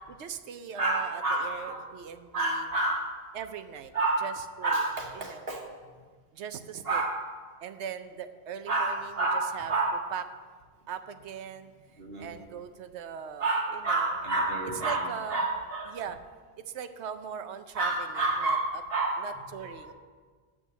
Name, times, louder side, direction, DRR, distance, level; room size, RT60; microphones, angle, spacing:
voice 1, 0.2-2.7 3.3-3.9 4.2-4.8 5.2-5.4 6.3-7.0 7.6-9.7 10.1-10.2 10.9-14.2 14.8-15.4 15.9-16.2 16.6-18.6 19.2-19.9, right 8 dB, 85° right, 9 dB, 1.0 m, -40 dB
voice 2, 0.8-1.9 2.3-3.2 3.9-4.3 4.6-5.7 6.8-7.2 8.7-10.1 12.0-12.3 13.4-16.0 17.7-19.3 19.6-19.9, right 2 dB, 65° right, 0 dB, 1.6 m, -29 dB
8.0 x 6.2 x 7.9 m, 1.5 s
omnidirectional pair, 1.1 m